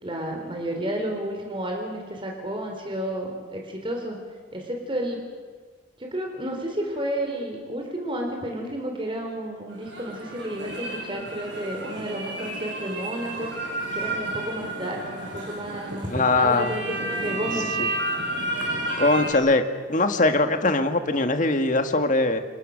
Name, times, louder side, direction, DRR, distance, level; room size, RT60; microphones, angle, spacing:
voice 1, 0.0-4.2 4.5-5.2 6.0-13.5 13.9-17.9, right 1 dB, 25° right, 2 dB, 3.9 m, -31 dB
sound 1, 9.7-19.3, right 2 dB, 70° right, 7.2 m, -31 dB
voice 2, 16.1-16.8 17.8-17.9 19.0-19.6 19.9-22.4, left 2 dB, 40° left, 7 dB, 1.9 m, -21 dB
29.0 x 29.0 x 6.5 m, 1.5 s
head